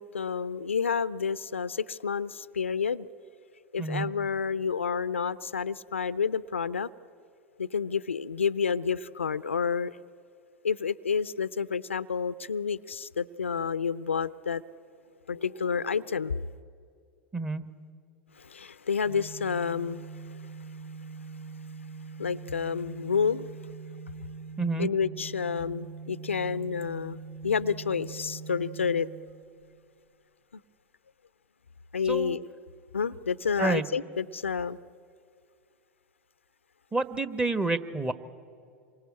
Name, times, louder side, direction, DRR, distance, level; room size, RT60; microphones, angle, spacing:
voice 1, 0.0-3.1 3.7-6.9 7.6-10.0 10.6-14.6 15.3-16.4 18.4-20.1 22.2-23.5 24.8-29.1 31.9-32.4 32.9-34.8, left 6 dB, 85° left, 17 dB, 0.6 m, -29 dB
voice 2, 17.3-17.6 24.6-24.9 32.1-32.4 33.6-33.8 36.9-38.1, right 3 dB, 15° right, 12 dB, 1.3 m, -28 dB
Organ, 19.0-29.9, right 4 dB, 75° right, 5.3 m, -43 dB
27.5 x 23.5 x 8.6 m, 2.4 s
figure-of-eight pair, 90°, 7 cm